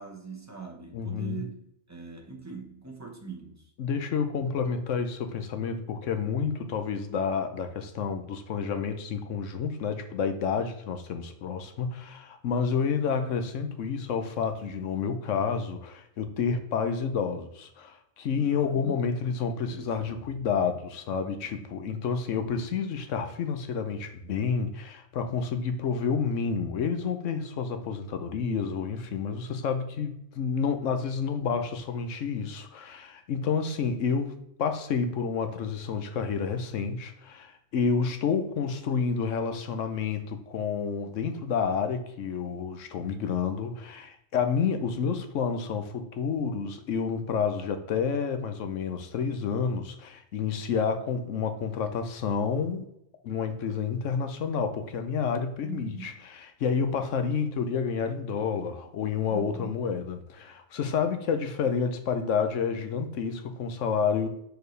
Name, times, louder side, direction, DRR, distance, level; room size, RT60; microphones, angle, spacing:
voice 1, 0.0-3.7 18.3-19.0 19.7-20.5 21.4-21.5 31.3-31.5 55.6-56.1 59.3-59.7, right 5 dB, 15° right, 1.0 m, -42 dB
voice 2, 0.9-1.4 3.8-34.3 34.6-52.9 53.2-64.3, left 6 dB, 70° left, 1.0 m, -29 dB
6.7 x 4.6 x 3.2 m
omnidirectional pair, 1.4 m